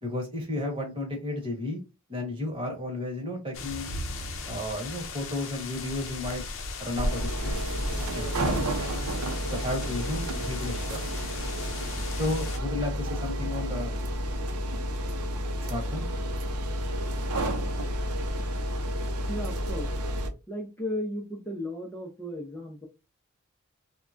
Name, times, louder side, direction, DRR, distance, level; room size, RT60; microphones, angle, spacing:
voice 1, 0.0-1.8 2.1-3.9 4.5-6.4 6.8-7.6 8.0-8.8 9.5-11.0 12.1-13.9 15.7-16.1, left 1 dB, 25° right, 0 dB, 1.1 m, -33 dB
sound 1, 3.5-12.6, left 4 dB, 60° left, 0.6 m, -38 dB
sound 2, 7.0-20.3, equal, 90° right, 0.6 m, -31 dB
voice 2, 19.3-20.0 20.5-22.9, left 1 dB, 10° left, -1 dB, 0.5 m, -35 dB
3.3 x 2.2 x 2.5 m, 0.27 s
head